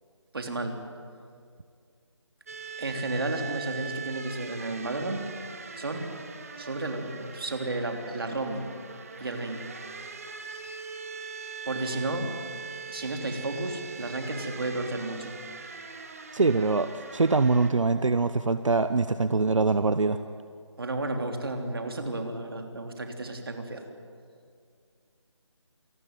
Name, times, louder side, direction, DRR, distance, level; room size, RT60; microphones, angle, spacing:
voice 1, 0.3-0.8 2.8-5.3 5.8-6.1 6.6-8.7 9.2-9.6 11.6-12.3 12.9-15.3 20.8-23.8, right 2 dB, 50° right, 4 dB, 3.3 m, -32 dB
sound 1, 2.5-17.7, right 5 dB, 30° right, 1.6 m, -41 dB
voice 2, 16.3-20.2, right 3 dB, 85° right, 11 dB, 1.0 m, -24 dB
27.5 x 19.5 x 9.5 m, 2.3 s
figure-of-eight pair, 175°, 16 cm